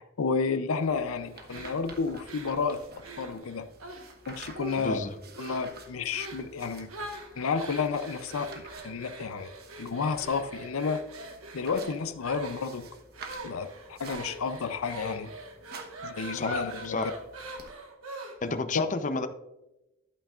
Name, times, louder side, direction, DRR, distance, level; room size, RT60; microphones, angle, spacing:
voice 1, 0.0-2.8 3.2-3.7 4.3-5.0 5.4-6.9 7.4-9.5 9.8-11.0 11.5-12.9 13.4-15.3 16.0-17.1 18.7-18.8, left 5 dB, 85° left, 11 dB, 0.5 m, -31 dB
sound 1, 0.8-17.7, right 3 dB, 50° right, 1.1 m, -51 dB
sound 2, 1.5-4.2 4.5-5.0 5.3-5.7 6.1-6.5 6.9-18.6, right 1 dB, 85° right, 1.5 m, -42 dB
voice 2, 4.8-5.1 16.3-17.1 18.4-19.3, left 3 dB, 35° left, 9 dB, 0.6 m, -31 dB
11.5 x 9.0 x 2.4 m, 0.97 s
head